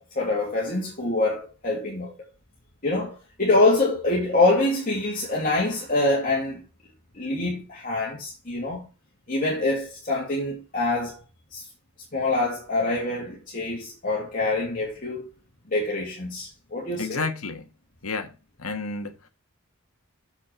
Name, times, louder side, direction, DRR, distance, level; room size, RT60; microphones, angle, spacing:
voice 1, 0.1-2.1 2.8-6.6 7.1-8.8 9.3-11.2 11.5-11.6 12.1-15.2 15.7-17.2, left 2 dB, 40° left, 2.7 m, -25 dB
voice 2, 17.0-17.7 18.0-18.3 18.6-19.3, left 4 dB, 70° left, 1.5 m, -31 dB
7.5 x 6.4 x 4.5 m
head